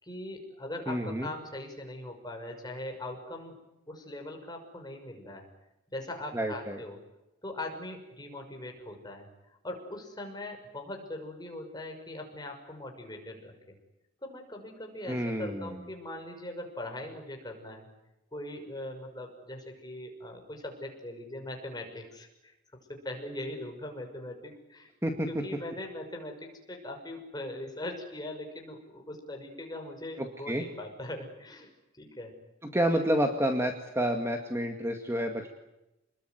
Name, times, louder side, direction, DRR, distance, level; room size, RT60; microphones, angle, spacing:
voice 1, 0.0-3.5 3.9-5.5 5.9-7.0 7.4-9.3 9.6-13.7 14.2-17.9 18.3-24.9 25.3-31.7 32.0-32.3 32.7-32.8, left 1 dB, 20° left, 3 dB, 6.1 m, -41 dB
voice 2, 0.9-1.3 6.3-6.8 15.1-15.8 25.0-25.3 30.2-30.6 32.7-35.5, equal, 15° right, 4 dB, 2.1 m, -29 dB
28.5 x 21.0 x 9.5 m, 0.95 s
head